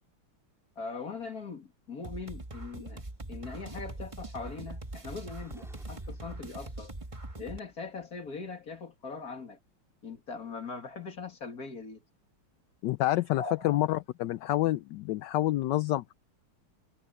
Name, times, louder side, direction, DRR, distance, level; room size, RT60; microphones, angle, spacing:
voice 1, 0.8-3.0 3.3-6.9 7.4-9.6 10.0-12.0 13.3-13.8, left 4 dB, 45° left, 2.9 m, -41 dB
sound 1, 2.0-7.6, right 2 dB, 15° right, 1.3 m, -42 dB
sound 2, 4.5-8.8, equal, ahead, 5.4 m, -61 dB
voice 2, 12.8-16.1, left 16 dB, 75° left, 1.0 m, -28 dB
omnidirectional pair, 2.3 m